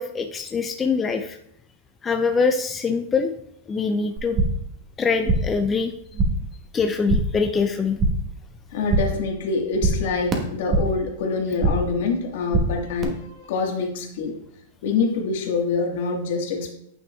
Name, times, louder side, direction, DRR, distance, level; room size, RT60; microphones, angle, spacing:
voice 1, 0.0-1.4 2.0-3.3 3.7-4.4 5.0-5.9 6.7-8.0, left 5 dB, 20° left, 6 dB, 0.4 m, -23 dB
sound 1, 4.2-4.7 5.0-5.6 5.9-6.5 6.8-7.4 7.7-8.4 8.6-9.3 9.5-11.0 11.3-12.0 12.2-13.0, right 2 dB, 25° right, 1.3 m, -24 dB
voice 2, 8.7-14.3 14.8-16.7, left 4 dB, 65° left, 2 dB, 1.5 m, -25 dB
9.0 x 5.7 x 2.3 m, 0.71 s
hypercardioid pair, 135°, 0 cm